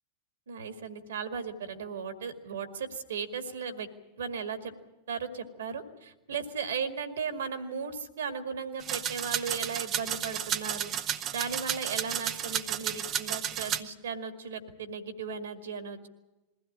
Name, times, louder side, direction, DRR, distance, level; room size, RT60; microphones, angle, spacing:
voice 1, 0.5-3.9 4.2-4.7 5.1-10.9 11.3-16.1, right 6 dB, 65° right, 8 dB, 2.1 m, -36 dB
sound 1, 8.8-13.8, right 10 dB, 30° right, 1.0 m, -32 dB
22.0 x 15.5 x 10.0 m, 1.1 s
figure-of-eight pair, 90°, 0 cm